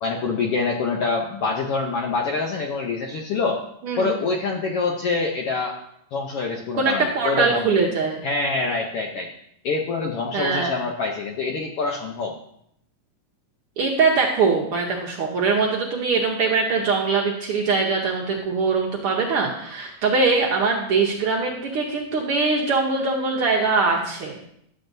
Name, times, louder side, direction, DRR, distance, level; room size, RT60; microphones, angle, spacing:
voice 1, 0.0-3.6 4.0-5.8 6.1-7.7 8.2-9.3 9.6-12.3, left 4 dB, 70° left, 1 dB, 1.4 m, -25 dB
voice 2, 6.8-8.2 10.3-10.7 13.8-24.4, right 4 dB, 65° right, -1 dB, 1.5 m, -22 dB
11.5 x 7.4 x 2.6 m, 0.72 s
omnidirectional pair, 3.4 m